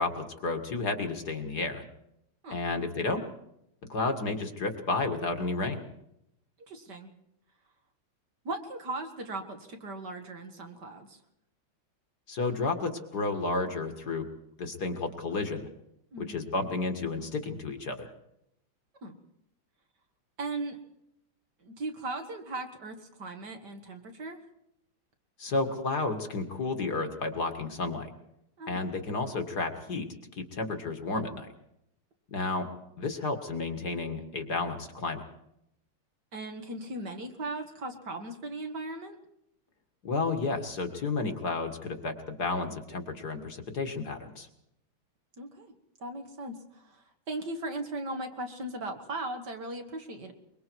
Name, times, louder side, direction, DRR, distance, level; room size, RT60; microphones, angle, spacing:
voice 1, 0.0-1.8 2.5-3.2 3.9-5.8 12.3-14.3 14.6-15.7 16.2-18.1 25.4-28.1 28.7-30.1 30.3-31.5 32.3-32.7 33.0-35.2 40.0-44.5, left 3 dB, 50° left, 6 dB, 2.2 m, -31 dB
voice 2, 6.7-7.1 8.4-11.2 16.1-16.4 19.0-19.1 20.4-20.8 21.6-24.4 28.6-28.8 36.3-39.2 45.4-45.7 46.0-50.3, right 2 dB, 50° right, 5 dB, 2.4 m, -38 dB
24.0 x 23.0 x 4.7 m, 0.80 s
omnidirectional pair, 2.4 m